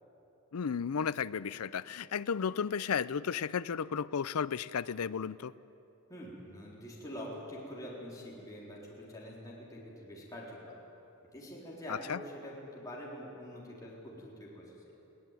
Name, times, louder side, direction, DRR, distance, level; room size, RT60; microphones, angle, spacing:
voice 1, 0.5-5.5 11.9-12.2, left 6 dB, 80° left, 17 dB, 0.5 m, -33 dB
voice 2, 6.1-10.7 11.3-14.7, equal, 15° left, -5 dB, 4.0 m, -45 dB
21.5 x 17.5 x 9.2 m, 3.0 s
head